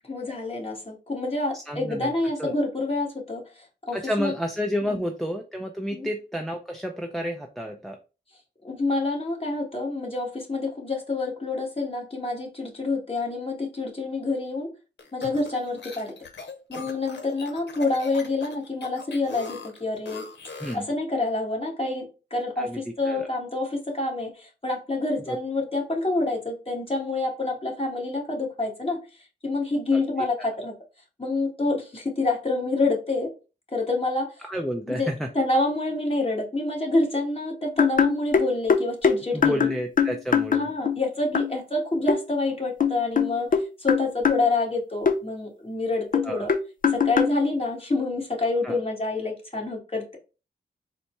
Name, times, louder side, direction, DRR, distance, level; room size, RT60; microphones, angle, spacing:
voice 1, 0.1-4.4 4.8-5.0 5.9-6.1 8.6-14.7 15.1-16.1 16.7-20.2 20.7-30.7 31.2-33.3 33.7-34.4 34.9-35.1 35.3-39.7 40.5-46.5 46.9-50.2, left 2 dB, 30° left, -2 dB, 1.8 m, -27 dB
voice 2, 1.5-2.1 2.4-2.5 3.9-8.0 20.6-20.8 22.6-22.8 23.0-23.3 25.3-25.4 29.9-30.0 34.5-35.3 39.3-40.6 46.2-46.5 48.6-48.8, equal, ahead, 3 dB, 0.5 m, -30 dB
sound 1, 15.0-20.9, left 4 dB, 70° left, 0.9 m, -40 dB
sound 2, 37.8-41.0 41.3-41.6 42.1-42.2 42.8-44.5 45.1-45.2 46.1-47.4, left 6 dB, 50° left, 0.5 m, -22 dB
4.1 x 2.1 x 4.5 m, 0.32 s
cardioid pair, 60°, 19 cm